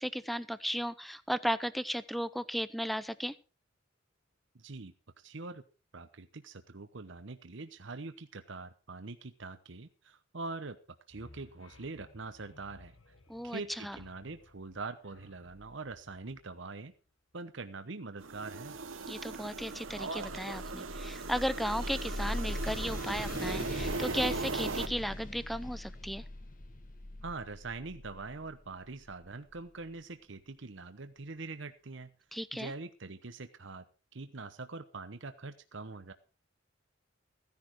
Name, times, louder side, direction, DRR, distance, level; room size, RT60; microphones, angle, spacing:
voice 1, 0.0-3.3 13.3-14.0 19.0-26.2 32.3-32.7, equal, ahead, 16 dB, 0.7 m, -35 dB
voice 2, 4.6-5.6 5.9-10.8 11.1-13.1 13.4-16.9 17.3-18.8 27.2-32.1 32.5-33.8 34.1-36.1, right 3 dB, 65° right, 9 dB, 1.0 m, -43 dB
sound 1, 11.1-17.3, left 2 dB, 80° left, 1.5 m, -59 dB
sound 2, 18.2-24.9, right 3 dB, 90° right, 1.2 m, -38 dB
sound 3, 19.1-29.8, left 1 dB, 45° left, 1.5 m, -41 dB
15.5 x 10.5 x 4.6 m, 0.34 s
head